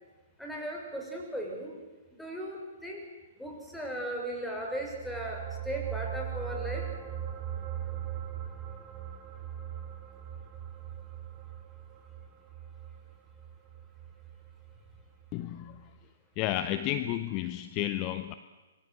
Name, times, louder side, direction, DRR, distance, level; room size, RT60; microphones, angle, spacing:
voice 1, 0.4-1.7 2.2-3.1 3.4-6.9, right 1 dB, 5° left, 0 dB, 6.3 m, -37 dB
sound 1, 4.6-15.3 15.7-15.8, right 10 dB, 20° right, 2.6 m, -40 dB
voice 2, 15.3-15.8 16.4-18.3, left 12 dB, 30° left, 11 dB, 1.1 m, -32 dB
27.5 x 23.5 x 8.0 m, 1.3 s
figure-of-eight pair, 120°, 0 cm